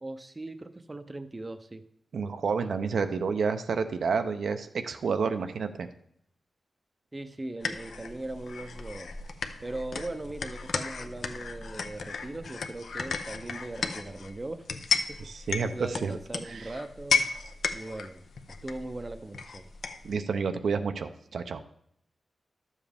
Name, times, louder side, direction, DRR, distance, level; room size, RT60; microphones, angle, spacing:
voice 1, 0.0-1.8 2.6-2.8 7.1-9.1 9.6-14.7 15.1-15.4 15.7-17.3 17.7-18.2 18.5-19.7, right 2 dB, 20° right, 9 dB, 0.5 m, -39 dB
voice 2, 2.1-5.9 15.2-16.2 16.4-16.7 20.0-21.6, right 5 dB, 80° right, 8 dB, 0.6 m, -30 dB
sound 1, 7.6-20.1, left 5 dB, 70° left, 0.6 m, -34 dB
11.5 x 7.2 x 3.4 m, 0.72 s
wide cardioid pair, 130°, 0 cm